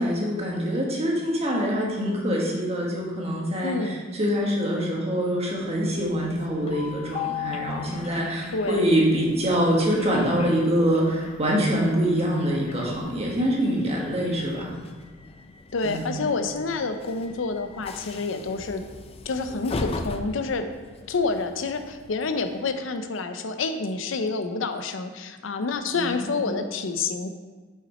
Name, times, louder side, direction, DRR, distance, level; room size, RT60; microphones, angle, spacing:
voice 1, 0.0-14.7 15.8-16.2 25.9-26.5, equal, 35° right, -2 dB, 1.4 m, -25 dB
voice 2, 3.6-4.0 8.5-8.8 15.7-18.8 19.2-20.6 21.1-27.3, left 4 dB, 85° left, 8 dB, 0.6 m, -28 dB
Train, 5.7-22.9, left 5 dB, 30° left, 0.4 m, -40 dB
5.8 x 5.7 x 4.2 m, 1.4 s
head